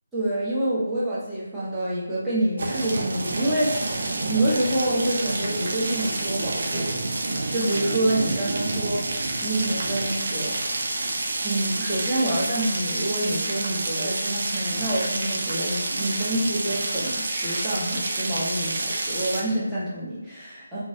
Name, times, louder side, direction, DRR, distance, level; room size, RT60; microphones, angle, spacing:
voice 1, 0.1-6.9 7.5-9.0 9.4-10.5 11.4-20.8, right 1 dB, 5° right, -13 dB, 0.8 m, -27 dB
sound 1, 2.6-19.4, right 2 dB, 50° right, 0.4 m, -28 dB
3.0 x 2.3 x 2.7 m, 1.0 s
figure-of-eight pair, 150°, 0 cm